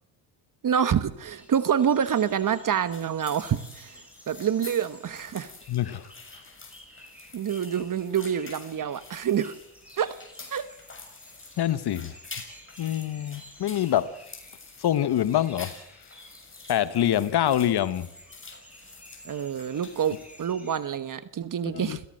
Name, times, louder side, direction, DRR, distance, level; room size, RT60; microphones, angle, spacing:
voice 1, 0.6-5.5 7.3-9.5 10.0-10.2 10.5-10.7 19.2-22.0, right 8 dB, 45° right, 14 dB, 1.2 m, -27 dB
sound 1, 1.2-20.8, equal, 5° right, 7.7 m, -52 dB
sound 2, 2.9-20.5, left 4 dB, 25° left, 6.6 m, -47 dB
voice 2, 5.7-6.1 11.6-12.1 12.8-14.2 14.8-16.1 16.7-18.1 21.7-22.0, left 11 dB, 55° left, 15 dB, 1.2 m, -25 dB
27.5 x 17.0 x 7.8 m, 0.79 s
supercardioid pair, 75°, 45 cm